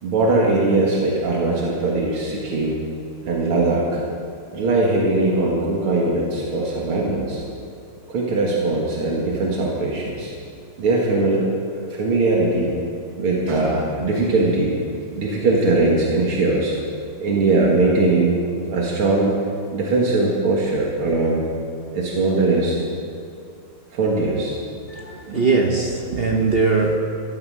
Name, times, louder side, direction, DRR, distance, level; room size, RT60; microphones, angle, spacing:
voice 1, 0.0-2.8 3.2-4.0 4.5-7.4 8.1-10.3 10.8-11.4 11.7-12.7 13.2-14.8 15.1-16.7 17.2-18.3 18.7-19.4 19.7-21.5 21.9-22.8 23.9-24.6 25.3-25.4 26.1-26.2, right 2 dB, 80° right, -3 dB, 2.6 m, -20 dB
voice 2, 24.9-27.0, right 4 dB, 50° right, 2 dB, 0.7 m, -20 dB
13.5 x 13.0 x 6.3 m, 2.4 s
omnidirectional pair, 2.3 m